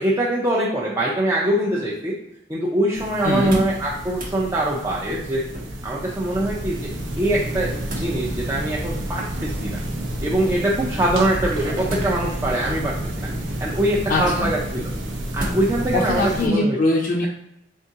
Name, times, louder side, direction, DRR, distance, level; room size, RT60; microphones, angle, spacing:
voice 1, 0.0-2.1 2.5-5.4 5.8-6.9 7.2-9.8 10.2-13.3 13.6-14.9 15.3-16.8, right 1 dB, 15° right, -4 dB, 0.4 m, -23 dB
sound 1, 2.9-16.5, right 1 dB, 85° right, 0.6 m, -30 dB
voice 2, 3.2-3.6 14.1-14.6 15.9-17.3, left 2 dB, 50° left, -2 dB, 0.4 m, -21 dB
sound 2, 3.5-3.8 4.1-4.4 5.5-6.0 7.4-8.2 9.4-9.8 11.9-12.5 13.2-13.7 15.4-15.9 16.3-16.4, right 1 dB, 50° right, 0.7 m, -34 dB
3.7 x 3.5 x 2.7 m, 0.80 s
head